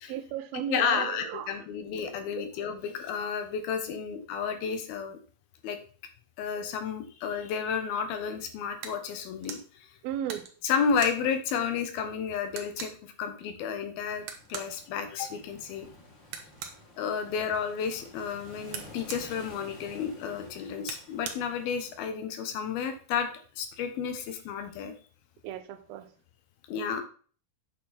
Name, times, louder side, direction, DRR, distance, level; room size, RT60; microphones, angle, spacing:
voice 1, 0.1-1.7 2.4-2.5 10.0-10.5 25.4-26.1, right 10 dB, 85° right, 10 dB, 2.7 m, -35 dB
voice 2, 0.7-5.2 5.6-5.8 6.4-9.9 10.6-14.2 14.5-15.9 17.0-23.3 23.6-24.9 26.7-27.0, left 6 dB, 85° left, 8 dB, 3.0 m, -31 dB
Worklight Switch, 8.8-9.0 9.4-9.6 10.2-11.2 11.8-11.9 12.2-12.3 12.5-13.0 14.2-14.7 16.2-16.8 18.7-19.2 20.8-21.4, right 7 dB, 65° right, 1.8 m, -40 dB
sound 1, 14.0-22.1, left 2 dB, 35° left, 2.4 m, -52 dB
8.3 x 6.5 x 4.2 m, 0.41 s
omnidirectional pair, 4.2 m